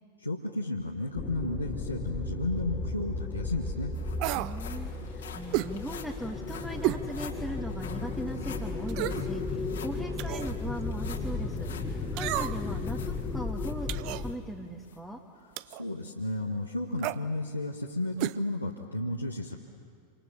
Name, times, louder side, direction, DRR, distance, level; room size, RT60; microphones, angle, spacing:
voice 1, 0.2-3.9 15.7-19.6, left 1 dB, 85° left, -2 dB, 1.6 m, -33 dB
sound 1, 1.1-14.3, left 3 dB, 20° left, 2.0 m, -35 dB
sound 2, 3.1-3.2 3.5-14.4 14.8-15.0 15.5-15.6, left 7 dB, 65° left, 2.6 m, -49 dB
sound 3, 4.2-4.6 5.5-5.7 6.8-7.1 7.5-7.6 8.9-9.3 10.2-10.5 12.2-12.7 13.9-14.3 15.6-15.8 17.0-17.2 18.2-18.4 18.6-18.7, right 17 dB, 45° right, 0.6 m, -31 dB
voice 2, 4.3-15.2, right 1 dB, 5° right, 0 dB, 1.6 m, -39 dB
27.5 x 26.5 x 7.1 m, 2.1 s
figure-of-eight pair, 90°, 0 cm